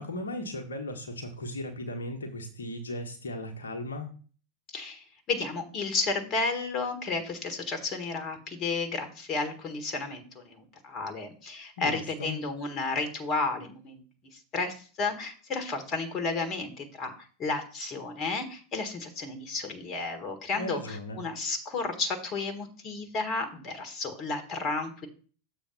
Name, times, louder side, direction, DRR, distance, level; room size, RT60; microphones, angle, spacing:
voice 1, 0.0-4.1 11.8-12.4 20.5-21.2, left 1 dB, 65° left, 2 dB, 1.2 m, -36 dB
voice 2, 4.7-14.0 14.3-25.1, left 3 dB, 30° left, 8 dB, 1.5 m, -32 dB
7.0 x 4.1 x 5.4 m, 0.40 s
figure-of-eight pair, 90°, 0 cm